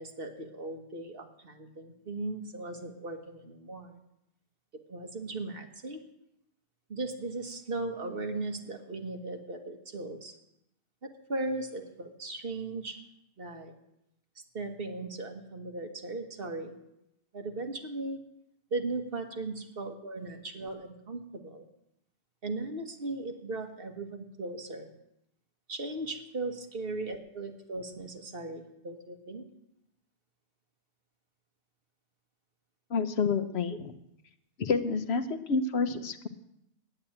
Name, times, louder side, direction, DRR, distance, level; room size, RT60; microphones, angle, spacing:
voice 1, 0.0-4.0 4.9-6.0 6.9-10.3 11.0-13.0 13.4-13.7 14.5-16.7 17.3-18.2 18.7-21.7 22.4-24.9 25.7-29.5 33.7-33.8, right 2 dB, 55° right, 4 dB, 1.6 m, -37 dB
voice 2, 32.9-33.9 34.6-36.3, left 5 dB, 70° left, 10 dB, 1.1 m, -29 dB
10.5 x 8.7 x 8.7 m, 0.82 s
omnidirectional pair, 1.1 m